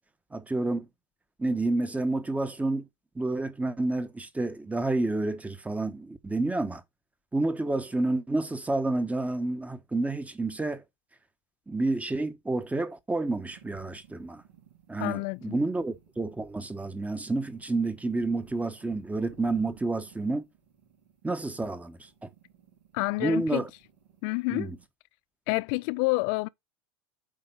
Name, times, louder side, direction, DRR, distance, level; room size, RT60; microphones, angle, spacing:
voice 1, 0.3-0.9 1.4-2.8 3.1-6.8 7.3-10.8 11.7-14.4 14.9-20.4 21.2-22.3 23.2-23.7 24.5-24.8, right 2 dB, 10° right, 1.1 m, -29 dB
sound 1, 13.2-24.8, right 7 dB, 75° right, 3.8 m, -57 dB
voice 2, 15.0-15.6 22.9-23.7 24.2-24.7 25.5-26.5, left 25 dB, 55° left, 0.4 m, -28 dB
8.8 x 3.9 x 5.4 m
hypercardioid pair, 90°, 15 cm